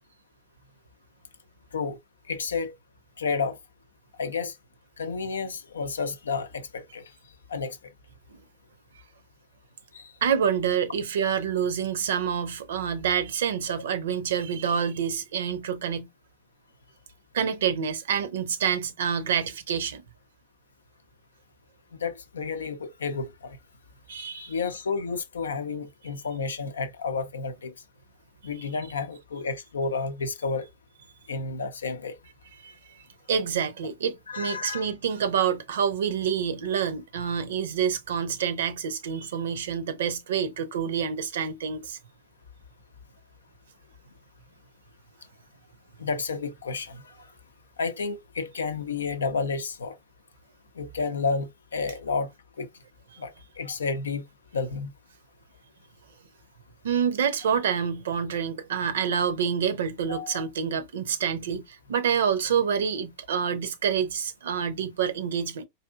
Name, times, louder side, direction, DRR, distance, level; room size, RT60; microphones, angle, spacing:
voice 1, 2.3-2.7 3.2-3.6 4.2-4.6 5.0-7.0 7.5-7.8 9.9-10.1 21.9-23.6 24.1-27.7 28.4-30.7 31.3-32.2 34.3-34.9 46.0-47.1 47.8-50.0 50.8-52.3 52.6-52.7 53.2-54.2 54.5-54.9 60.1-60.5, left 4 dB, 70° left, 0.6 m, -31 dB
voice 2, 10.2-16.1 17.3-20.0 24.1-24.5 32.6-32.7 33.3-42.0 56.8-65.6, right 7 dB, 60° right, 0.6 m, -27 dB
4.7 x 2.6 x 2.4 m
figure-of-eight pair, 90°, 0 cm